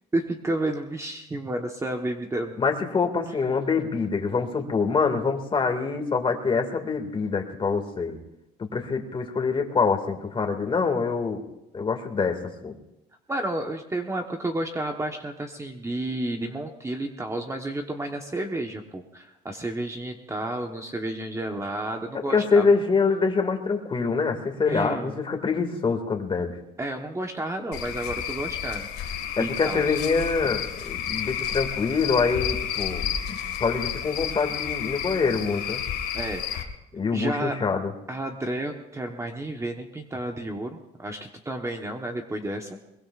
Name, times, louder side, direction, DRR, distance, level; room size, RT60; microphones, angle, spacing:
voice 1, 0.1-2.6 13.3-22.7 24.7-25.2 26.8-30.0 36.1-36.7 37.1-37.6 38.1-42.7, right 1 dB, 15° right, 4 dB, 1.1 m, -31 dB
voice 2, 2.6-8.2 8.7-11.4 11.7-12.7 22.3-26.6 29.4-35.8 36.9-37.9, left 4 dB, 30° left, 4 dB, 2.1 m, -25 dB
Cricket / Frog, 27.7-36.6, left 9 dB, 75° left, 1.8 m, -31 dB
22.0 x 21.5 x 2.5 m, 0.89 s
cardioid pair, 110°, 17 cm